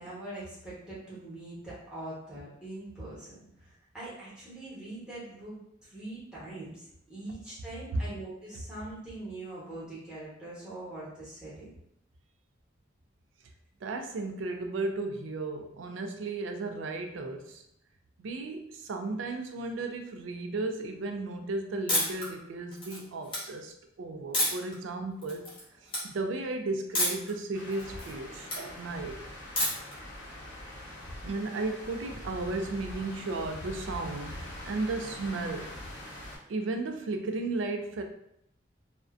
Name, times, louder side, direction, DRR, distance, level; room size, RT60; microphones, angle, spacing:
voice 1, 0.0-6.8 7.1-11.7, right 2 dB, 5° right, -10 dB, 0.9 m, -42 dB
voice 2, 13.8-17.6 18.2-25.5 26.0-29.2 31.2-35.8 36.5-38.0, right 3 dB, 80° right, 5 dB, 0.4 m, -34 dB
sound 1, 21.9-22.3 22.7-23.4 24.3-24.7 25.2-25.6 25.9-26.0 26.9-27.3 27.7-28.6 29.6-29.9, left 1 dB, 25° left, 0.8 m, -29 dB
sound 2, 27.5-36.4, left 1 dB, 75° left, 0.8 m, -43 dB
2.4 x 2.1 x 2.4 m, 0.74 s
head